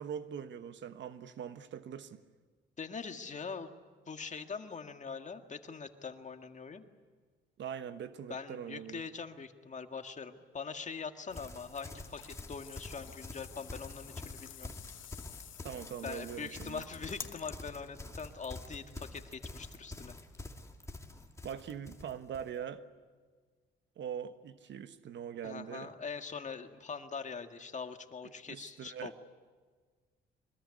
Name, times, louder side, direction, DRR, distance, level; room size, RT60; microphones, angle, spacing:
voice 1, 0.0-2.2 7.6-9.0 15.6-16.8 21.4-22.9 24.0-25.9 28.5-29.1, right 8 dB, 65° right, 1.3 m, -42 dB
voice 2, 2.8-3.7 4.1-6.9 8.3-14.7 16.0-20.1 25.4-29.2, left 5 dB, 35° left, 1.8 m, -43 dB
sound 1, 11.3-17.5, left 12 dB, 75° left, 1.2 m, -52 dB
Livestock farm animals working animals, 11.3-22.5, left 2 dB, 15° left, 2.4 m, -47 dB
24.0 x 21.0 x 9.8 m
cardioid pair, 90°, 20 cm